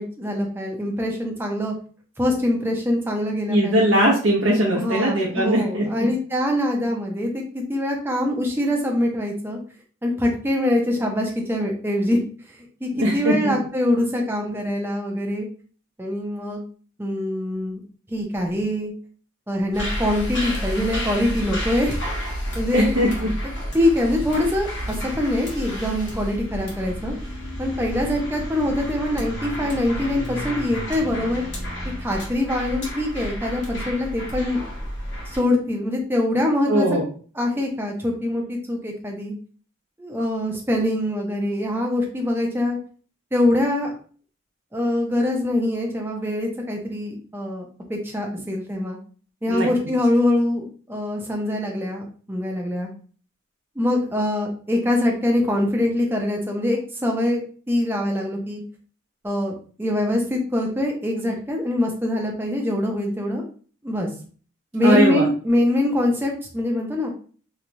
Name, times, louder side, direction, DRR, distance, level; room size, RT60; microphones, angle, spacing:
voice 1, 0.0-1.7 2.2-3.8 4.7-9.6 10.0-12.2 12.5-15.5 16.0-16.6 17.0-17.8 18.1-18.9 19.5-22.0 22.5-22.9 23.4-27.2 27.6-31.4 32.0-34.6 35.3-36.9 37.4-39.3 40.0-42.8 43.3-43.9 44.7-49.0 49.4-52.9 53.8-57.4 57.7-58.6 59.2-59.5 59.8-63.4 63.8-64.1 64.7-67.1, left 1 dB, 10° right, 0 dB, 0.5 m, -24 dB
voice 2, 3.5-6.1 12.9-13.5 22.7-23.3 36.7-37.0 49.5-49.7 64.8-65.3, equal, 75° right, -3 dB, 0.6 m, -20 dB
sound 1, 19.7-35.4, equal, 60° left, 1.2 m, -31 dB
3.0 x 2.2 x 2.6 m, 0.41 s
head